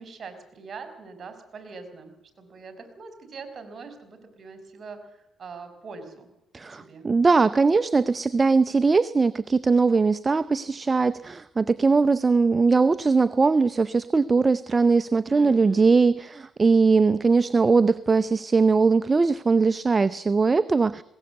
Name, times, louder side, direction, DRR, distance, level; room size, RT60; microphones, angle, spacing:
voice 1, 0.0-6.3 6.7-7.1 15.3-15.9, right 4 dB, 45° right, 9 dB, 4.6 m, -43 dB
voice 2, 6.5-21.0, right 4 dB, 30° right, 13 dB, 0.7 m, -20 dB
20.5 x 18.5 x 7.9 m, 0.85 s
cardioid pair, 90°, 0 cm